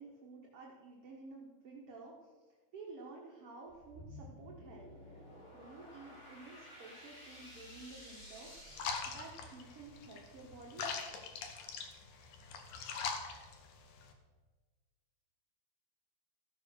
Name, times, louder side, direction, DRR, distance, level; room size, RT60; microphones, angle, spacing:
voice 1, 0.0-5.2 5.5-10.9, right 3 dB, 60° right, -2 dB, 1.6 m, -52 dB
sound 1, 3.7-10.0, equal, 25° left, 1.7 m, -54 dB
sound 2, 8.7-14.1, left 5 dB, 70° left, 2.7 m, -42 dB
15.0 x 7.0 x 6.4 m, 1.4 s
omnidirectional pair, 4.6 m